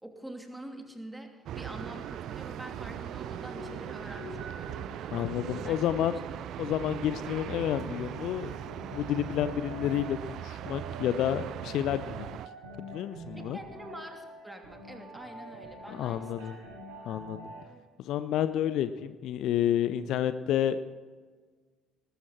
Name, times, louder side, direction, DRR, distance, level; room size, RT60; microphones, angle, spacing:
voice 1, 0.0-5.1 5.5-5.7 13.3-16.5, right 1 dB, 10° right, 3 dB, 2.9 m, -45 dB
sound 1, 1.5-12.5, right 12 dB, 55° right, 0.4 m, -40 dB
sound 2, 1.6-17.6, right 1 dB, 70° right, 5.9 m, -47 dB
voice 2, 5.1-6.2 6.6-8.5 8.9-12.4 12.9-13.6 15.9-16.5 17.1-17.5 18.0-20.8, left 11 dB, 55° left, 13 dB, 0.5 m, -30 dB
19.5 x 13.5 x 4.3 m, 1.4 s
figure-of-eight pair, 50°, 0 cm